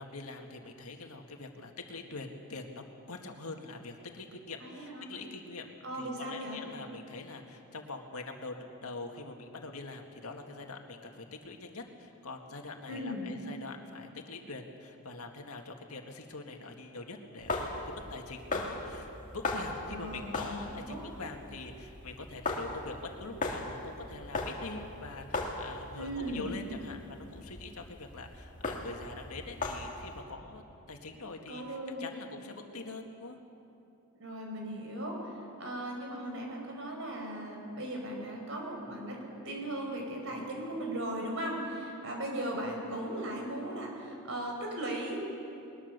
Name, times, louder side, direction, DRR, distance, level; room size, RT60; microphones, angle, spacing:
voice 1, 0.0-33.4, left 3 dB, 80° left, 3 dB, 1.9 m, -44 dB
voice 2, 4.6-5.1 5.8-6.6 12.9-13.3 19.9-21.0 25.9-26.5 31.5-32.1 34.1-45.2, right 1 dB, 60° right, 1 dB, 4.7 m, -38 dB
sound 1, 17.4-30.2, left 2 dB, 35° left, 1.9 m, -39 dB
21.0 x 20.5 x 6.7 m, 2.8 s
head